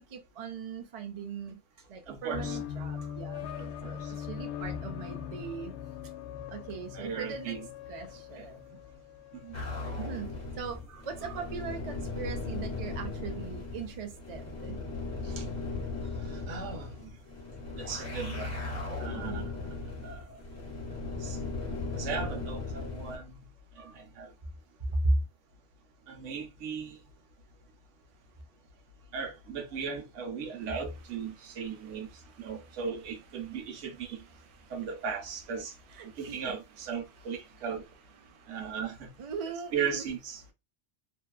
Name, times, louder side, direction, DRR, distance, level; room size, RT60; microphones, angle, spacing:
voice 1, 0.0-1.6 1.9-3.5 3.8-5.7 6.5-7.5 7.9-8.6 10.0-10.3 10.6-14.8 19.1-19.5 23.8-23.9 24.9-25.1 31.4-32.8 33.4-33.6 34.2-34.8 35.9-36.6 37.2-37.7 38.2-38.7 39.2-40.1, right 3 dB, 50° right, 0.4 m, -38 dB
voice 2, 2.1-2.6 3.6-3.9 6.9-7.7 8.4-8.5 9.4-9.6 15.4-15.5 16.3-17.1 17.8-18.5 19.0-19.4 20.0-20.2 21.2-21.4 22.0-23.3 23.8-24.3 26.1-27.0 29.1-32.1 32.4-34.2 34.7-35.7 36.2-37.8 38.5-39.1 39.7-40.5, right 6 dB, 85° right, 1.0 m, -37 dB
sound 1, 2.3-9.7, left 8 dB, 75° left, 0.8 m, -40 dB
sound 2, 9.5-23.2, left 3 dB, 40° left, 1.1 m, -37 dB
2.7 x 2.2 x 2.3 m
omnidirectional pair, 1.2 m